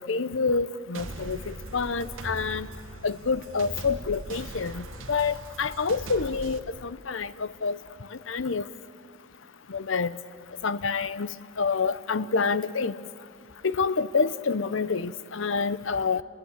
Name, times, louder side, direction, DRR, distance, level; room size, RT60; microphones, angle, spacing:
voice 1, 0.0-2.7 3.0-7.8 8.1-8.6 9.7-10.2 10.6-13.1 13.6-16.2, left 4 dB, 70° left, 15 dB, 0.7 m, -28 dB
sound 1, 0.9-6.6, right 2 dB, 75° right, 1.5 m, -40 dB
29.0 x 21.0 x 8.2 m, 2.3 s
head